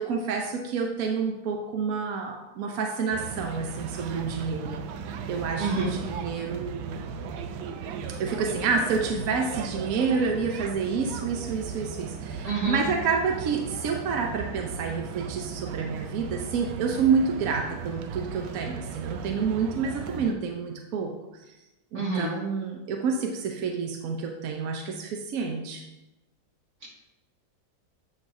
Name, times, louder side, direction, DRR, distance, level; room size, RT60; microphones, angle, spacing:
voice 1, 0.0-4.8 5.3-7.0 8.2-21.1 21.9-25.8, right 5 dB, 65° right, 2 dB, 0.9 m, -28 dB
sound 1, 3.1-20.3, right 6 dB, 90° right, 1.3 m, -36 dB
voice 2, 5.6-5.9 12.4-12.8 21.9-22.3 26.8-26.9, right 3 dB, 50° right, -6 dB, 2.7 m, -28 dB
8.5 x 5.9 x 2.6 m, 0.98 s
omnidirectional pair, 2.1 m